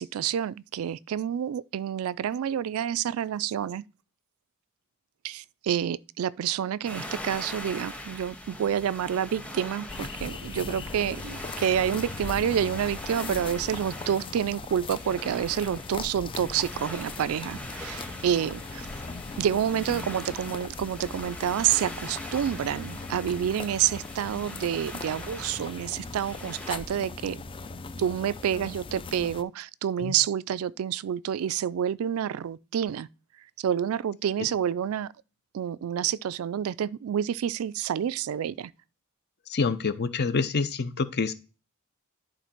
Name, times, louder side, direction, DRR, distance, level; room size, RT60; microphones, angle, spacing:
voice 1, 0.0-3.8 5.2-18.9 19.4-27.4 28.0-33.1 33.6-35.1 35.5-38.7, right 9 dB, 70° right, 0.3 m, -28 dB
sound 1, 6.8-26.8, left 1 dB, 5° left, 1.4 m, -42 dB
sound 2, 9.9-29.4, left 3 dB, 25° left, 0.4 m, -39 dB
voice 2, 39.5-41.3, left 4 dB, 50° left, 0.7 m, -27 dB
11.0 x 3.9 x 4.4 m
head